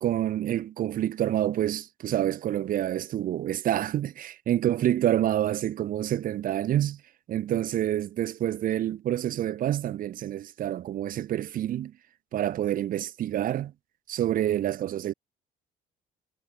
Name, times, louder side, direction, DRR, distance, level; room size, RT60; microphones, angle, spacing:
voice 1, 0.0-7.0 7.3-11.9 12.3-13.7 14.1-15.1, right 12 dB, 55° right, 0.9 m, -27 dB
cardioid pair, 110°, 17 cm